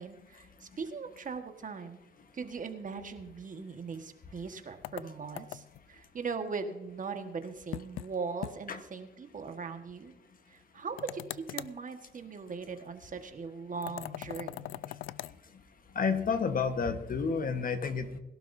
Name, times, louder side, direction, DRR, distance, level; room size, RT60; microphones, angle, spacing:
voice 1, 0.0-2.0 2.3-10.1 10.5-14.8, right 5 dB, 40° right, 7 dB, 1.6 m, -40 dB
sound 1, 4.8-5.9 7.7-8.1 8.4-8.6 8.9-9.0 11.0-11.8 13.8-15.4, left 15 dB, 85° left, 0.4 m, -41 dB
voice 2, 15.9-18.2, left 5 dB, 45° left, 9 dB, 1.4 m, -30 dB
21.5 x 12.0 x 2.7 m, 1.1 s
cardioid pair, 90°, 20 cm